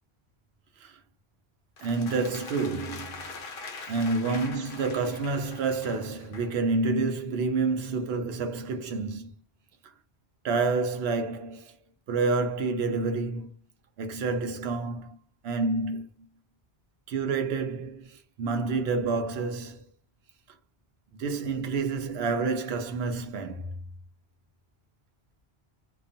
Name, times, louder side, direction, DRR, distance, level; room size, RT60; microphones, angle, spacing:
sound 1, 1.8-6.6, left 4 dB, 65° left, 0.8 m, -43 dB
voice 1, 1.8-3.3 3.8-9.3 9.8-9.9 10.4-11.8 12.1-13.5 14.0-15.2 15.4-16.1 17.1-19.9 21.2-23.8, right 4 dB, 80° right, 0.8 m, -29 dB
2.3 x 2.2 x 2.5 m
omnidirectional pair, 1.0 m